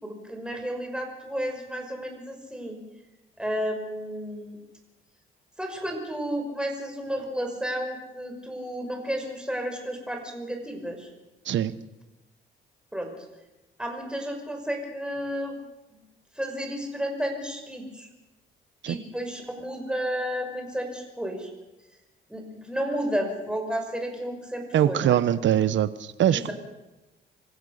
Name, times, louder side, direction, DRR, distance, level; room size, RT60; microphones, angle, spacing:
voice 1, 0.0-2.8 3.4-4.6 5.6-11.1 12.9-13.1 13.8-15.6 15.9-16.0 16.4-18.1 18.9-21.5 22.3-25.2 26.3-26.5, equal, 5° right, 2 dB, 6.0 m, -32 dB
voice 2, 24.7-26.5, right 11 dB, 70° right, 15 dB, 1.2 m, -22 dB
25.5 x 15.0 x 6.7 m, 1.0 s
cardioid pair, 90°, 20 cm